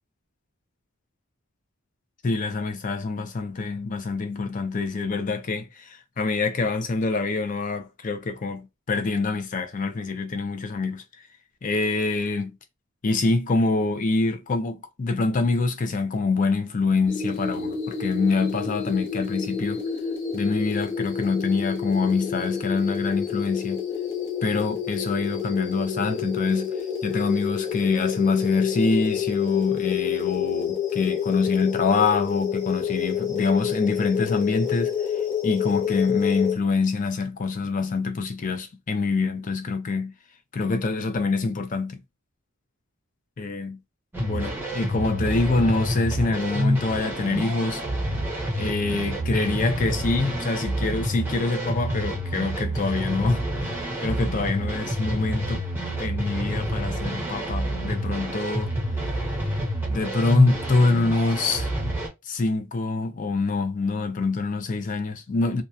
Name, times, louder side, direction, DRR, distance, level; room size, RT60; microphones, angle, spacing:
voice 1, 2.2-11.3 11.6-12.5 13.0-19.8 20.3-23.8 24.4-26.7 27.0-40.1 40.5-42.0 43.4-43.8 44.2-47.8 48.6-55.6 56.0-58.7 59.0-59.6 59.9-61.7 62.3-65.6, left 3 dB, 35° left, 0.4 m, -25 dB
sound 1, 17.1-36.6, left 8 dB, 50° left, 0.8 m, -28 dB
sound 2, 44.1-62.1, equal, 10° right, 0.7 m, -28 dB
2.7 x 2.2 x 2.3 m
head